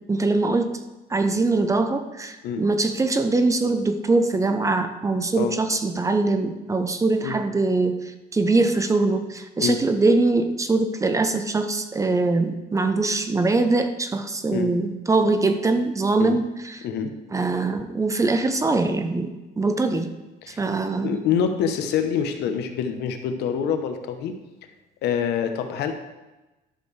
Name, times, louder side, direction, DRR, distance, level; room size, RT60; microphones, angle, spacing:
voice 1, 0.1-0.7 1.1-16.9 17.3-20.1 20.5-21.2, right 3 dB, 20° right, 8 dB, 0.7 m, -22 dB
voice 2, 21.0-24.4 25.0-25.9, left 7 dB, 80° left, 7 dB, 1.0 m, -26 dB
11.5 x 6.7 x 3.3 m, 1.1 s
cardioid pair, 110°, 17 cm